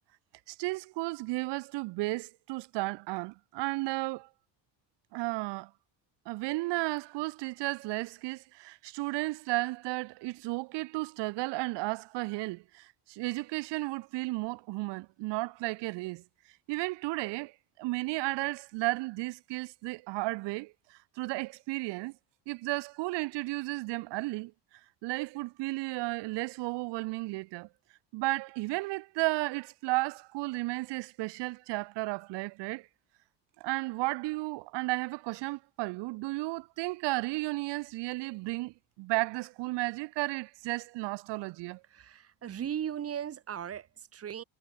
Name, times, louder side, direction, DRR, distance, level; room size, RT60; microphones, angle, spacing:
voice 1, 0.5-4.3 5.1-5.7 6.3-16.2 16.7-22.1 22.5-24.5 25.0-27.7 28.1-32.9 33.6-41.8, right 23 dB, 75° right, 1.0 m, -34 dB
voice 2, 41.8-44.4, right 9 dB, 35° right, 3.6 m, -37 dB
cardioid pair, 180°, 42 cm